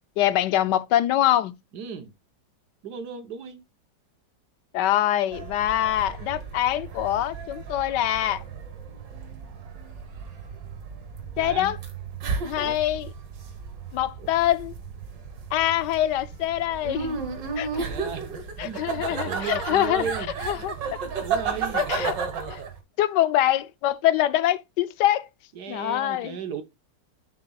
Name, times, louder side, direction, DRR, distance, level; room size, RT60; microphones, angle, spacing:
voice 1, 0.2-1.6 4.7-8.4 11.4-11.8 12.4-13.1 13.9-14.7 15.5-17.2 17.6-17.9 18.6-20.0 20.5-20.8 21.7-22.1 22.5-22.6 23.0-25.3 25.7-26.6, left 13 dB, 75° left, 1.2 m, -24 dB
voice 2, 1.7-2.1 2.8-3.6 11.3-11.7 12.6-12.8 14.2-14.3 17.8-18.3 18.6-20.4 21.2-21.9 25.5-26.6, right 6 dB, 65° right, 1.6 m, -35 dB
sound 1, 5.3-22.8, right 5 dB, 85° right, 2.1 m, -33 dB
11.0 x 5.0 x 2.3 m
omnidirectional pair, 1.9 m